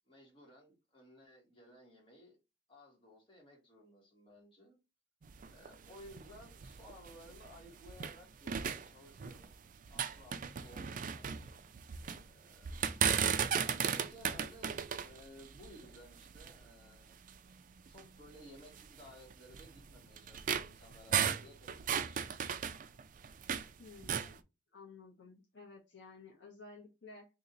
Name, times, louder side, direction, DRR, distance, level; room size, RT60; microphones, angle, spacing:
voice 1, 0.1-2.4 2.7-4.8 5.5-9.6 9.9-11.4 12.1-12.7 13.6-17.1 17.9-22.3, equal, 30° left, 1.6 m, -57 dB
sound 1, 5.2-8.2 8.5-9.5 9.8-12.2 12.6-16.7 17.3-17.4 17.9-18.0 18.8-23.7 24.0-24.4, right 8 dB, 45° right, 0.4 m, -36 dB
voice 2, 23.8-24.4 24.7-27.3, left 3 dB, 75° left, 1.0 m, -54 dB
2.8 x 2.8 x 3.8 m
head